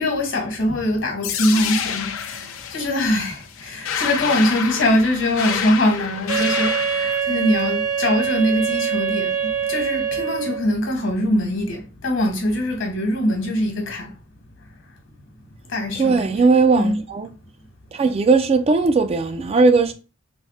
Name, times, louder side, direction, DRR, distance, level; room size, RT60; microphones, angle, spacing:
voice 1, 0.0-14.1 15.7-16.4 16.7-17.0, left 1 dB, 65° left, 1.2 m, -22 dB
sound 1, 1.2-7.2, left 7 dB, 80° left, 0.5 m, -28 dB
Wind instrument woodwind instrument, 6.3-10.7, right 7 dB, 75° right, 0.6 m, -24 dB
voice 2, 16.0-17.3 17.9-19.9, right 4 dB, 30° right, 0.3 m, -18 dB
3.4 x 2.1 x 4.1 m
head